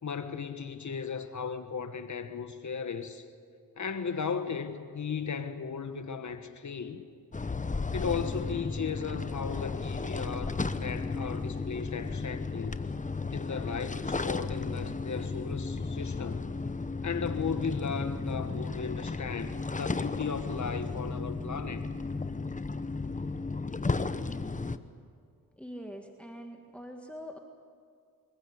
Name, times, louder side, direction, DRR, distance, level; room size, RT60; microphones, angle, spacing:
voice 1, 0.0-3.2 3.8-7.0 7.9-12.8 13.3-16.5 17.0-21.9, left 6 dB, 55° left, 1.6 m, -36 dB
sound 1, 7.3-24.8, left 3 dB, 20° left, 1.0 m, -34 dB
voice 2, 25.5-27.4, equal, 5° left, 1.9 m, -43 dB
23.5 x 15.5 x 8.2 m
cardioid pair, 55°, 35 cm